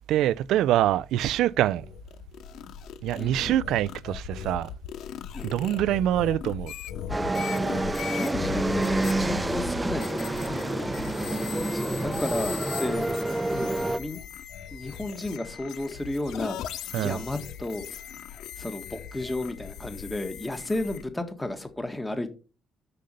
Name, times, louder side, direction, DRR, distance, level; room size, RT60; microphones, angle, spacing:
voice 1, 0.1-1.9 3.0-4.7 5.4-6.7 16.9-17.2, right 12 dB, 85° right, 0.3 m, -25 dB
sound 1, 1.5-21.0, left 9 dB, 80° left, 0.5 m, -39 dB
voice 2, 3.2-3.6 5.3-5.5 8.1-10.2 11.7-14.2 14.7-16.6 16.9-17.8 18.6-22.3, left 1 dB, 10° left, 1.6 m, -33 dB
sound 2, 7.1-14.0, right 2 dB, 15° right, 0.6 m, -28 dB
6.6 x 6.5 x 5.6 m
cardioid pair, 90°, 0 cm